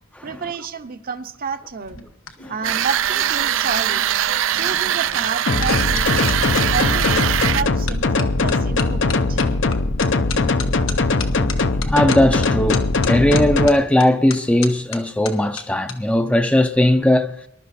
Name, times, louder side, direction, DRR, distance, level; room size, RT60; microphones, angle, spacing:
voice 1, 0.2-2.0 2.5-4.1 4.5-6.2 6.7-9.4, right 5 dB, 45° right, 0.8 m, -30 dB
sound 1, 1.7-6.7 7.3-7.6 7.9-16.0 16.2-16.6, left 7 dB, 85° left, 1.3 m, -35 dB
sound 2, 2.6-7.6, right 10 dB, 70° right, 0.5 m, -21 dB
sound 3, 5.5-13.7, left 3 dB, 65° left, 0.8 m, -20 dB
voice 2, 11.9-17.4, left 1 dB, 5° left, 0.5 m, -18 dB
20.5 x 11.5 x 4.2 m
head